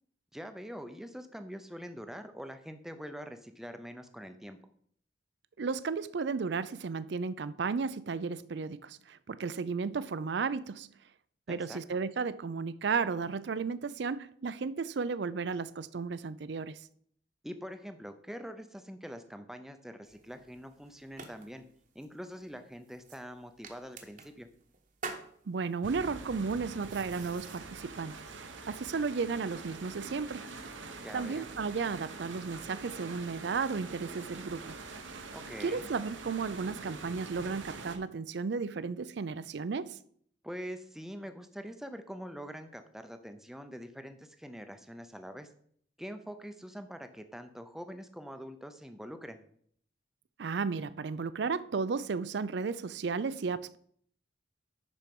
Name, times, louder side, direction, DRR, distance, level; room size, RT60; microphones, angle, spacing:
voice 1, 0.3-4.6 11.5-11.8 17.4-21.6 21.9-24.5 31.0-31.5 35.3-35.9 40.4-45.5 46.0-49.4, equal, ahead, 0.6 m, -44 dB
voice 2, 5.6-10.9 11.5-16.8 25.5-28.3 28.7-30.5 31.1-34.8 35.6-40.0 50.4-53.8, right 5 dB, 65° right, 0.4 m, -34 dB
sound 1, 20.0-27.6, right 4 dB, 45° right, 1.0 m, -49 dB
sound 2, 25.8-38.0, right 3 dB, 85° right, 1.0 m, -45 dB
10.5 x 4.4 x 5.3 m
head